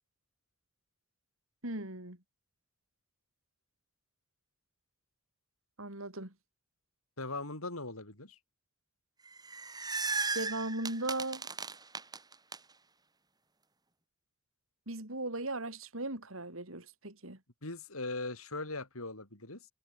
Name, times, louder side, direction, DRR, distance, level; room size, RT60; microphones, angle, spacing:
voice 1, 1.6-2.2 5.8-6.3 10.3-11.5 14.9-17.4, right 2 dB, 70° right, 4.9 m, -37 dB
voice 2, 7.2-8.4 17.6-19.7, left 2 dB, 85° left, 7.2 m, -40 dB
sound 1, 9.3-12.6, right 4 dB, 20° right, 3.2 m, -36 dB
head